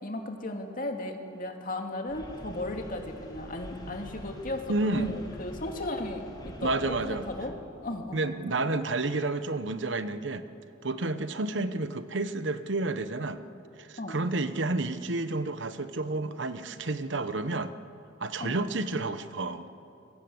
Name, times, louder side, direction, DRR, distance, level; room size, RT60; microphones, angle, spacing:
voice 1, 0.0-8.3 11.1-11.2 14.0-14.2 18.4-18.6, left 1 dB, 45° left, 3 dB, 2.6 m, -36 dB
sound 1, 2.1-7.5, equal, 20° left, 3.1 m, -45 dB
voice 2, 4.7-5.2 6.6-7.3 8.1-10.4 10.8-13.4 13.8-17.7 18.2-19.7, right 2 dB, 70° right, 11 dB, 1.1 m, -30 dB
27.0 x 21.5 x 8.0 m, 2.8 s
head